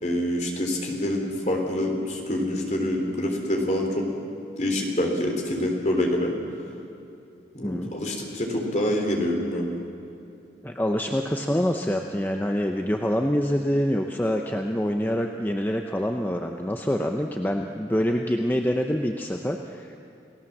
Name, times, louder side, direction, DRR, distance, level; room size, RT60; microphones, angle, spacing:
voice 1, 0.0-4.1 4.6-6.3 7.5-9.7, left 1 dB, 40° left, 1 dB, 3.7 m, -26 dB
voice 2, 10.6-20.0, equal, 10° left, 3 dB, 0.8 m, -26 dB
29.5 x 17.5 x 7.4 m, 2.7 s
head